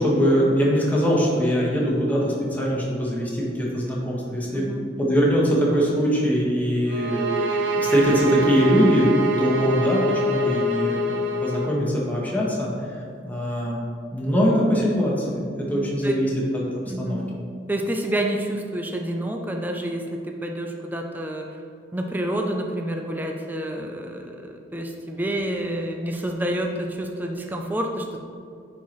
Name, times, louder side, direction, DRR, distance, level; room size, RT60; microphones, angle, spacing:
voice 1, 0.0-4.6 5.0-9.1 9.4-12.7 13.2-13.8 14.1-16.3 17.0-17.2, equal, 10° left, -5 dB, 1.4 m, -22 dB
sound 1, 6.9-11.8, right 1 dB, 80° right, 0.7 m, -25 dB
voice 2, 15.6-16.1 16.9-17.4 17.7-20.0 20.4-21.4 21.9-28.2, right 1 dB, 10° right, 2 dB, 0.4 m, -28 dB
9.5 x 4.6 x 3.1 m, 2.4 s
head